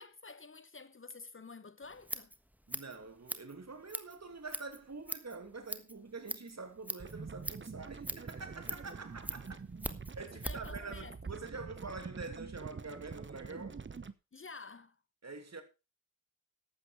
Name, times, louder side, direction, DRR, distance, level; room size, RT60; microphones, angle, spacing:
voice 1, 0.0-2.3 10.4-11.4 14.3-15.0, left 4 dB, 40° left, 0.9 m, -50 dB
Scissors, 1.8-10.7, equal, 5° right, 1.4 m, -43 dB
voice 2, 2.7-9.6 10.1-13.8 15.2-15.6, right 4 dB, 55° right, 2.8 m, -46 dB
sound 1, 7.0-14.1, right 5 dB, 35° right, 0.9 m, -45 dB
12.0 x 8.5 x 4.5 m
cardioid pair, 45°, 33 cm